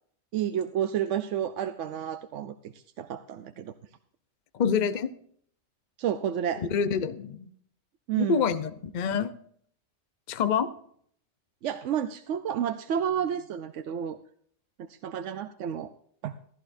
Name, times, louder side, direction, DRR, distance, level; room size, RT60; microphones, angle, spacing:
voice 1, 0.3-3.7 6.0-6.6 8.1-8.5 11.6-14.2 14.8-15.9 16.2-16.3, right 9 dB, 80° right, 10 dB, 1.0 m, -30 dB
voice 2, 4.5-5.1 6.6-7.5 8.2-9.3 10.3-10.7, left 6 dB, 45° left, 12 dB, 0.7 m, -27 dB
15.5 x 13.5 x 2.6 m, 0.62 s
omnidirectional pair, 1.2 m